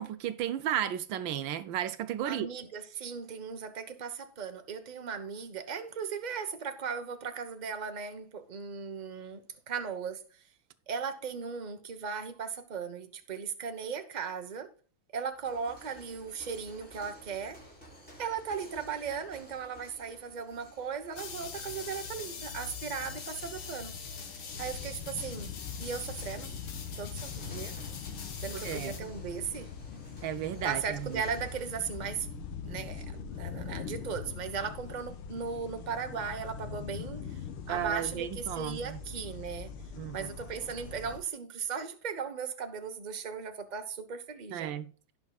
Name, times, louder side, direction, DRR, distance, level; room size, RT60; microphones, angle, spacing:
voice 1, 0.0-2.5 28.5-29.0 30.2-31.2 37.7-39.0 40.0-40.3 44.5-44.9, right 10 dB, 70° right, 1.3 m, -34 dB
voice 2, 2.2-10.3 10.9-14.7 15.1-17.6 18.2-23.9 24.6-25.5 25.8-26.5 27.0-27.8 28.4-29.7 30.6-32.3 32.6-37.4 37.7-39.7 40.1-44.7, right 6 dB, 35° right, 0.7 m, -37 dB
sound 1, 15.3-31.7, equal, 5° left, 4.0 m, -55 dB
sound 2, 21.2-29.0, left 6 dB, 70° left, 2.1 m, -42 dB
sound 3, 24.5-41.2, left 6 dB, 85° left, 1.9 m, -42 dB
17.0 x 5.8 x 2.4 m
omnidirectional pair, 2.3 m